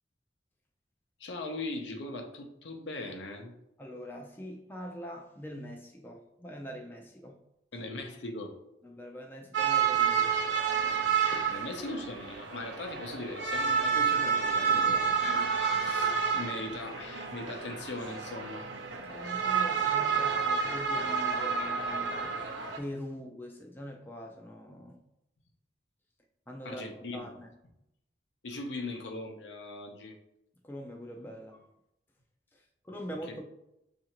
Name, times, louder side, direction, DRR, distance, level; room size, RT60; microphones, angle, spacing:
voice 1, 1.2-3.5 7.7-8.5 11.3-18.7 26.6-27.4 28.4-30.2 33.1-33.4, left 2 dB, 80° left, 3 dB, 0.6 m, -40 dB
voice 2, 3.8-7.4 8.8-10.4 19.0-25.0 26.5-26.8 27.1-27.5 30.6-31.7 32.5-33.4, equal, 10° left, 2 dB, 0.4 m, -43 dB
sound 1, 9.5-22.8, right 6 dB, 85° right, 0.6 m, -29 dB
6.4 x 2.5 x 2.9 m, 0.86 s
head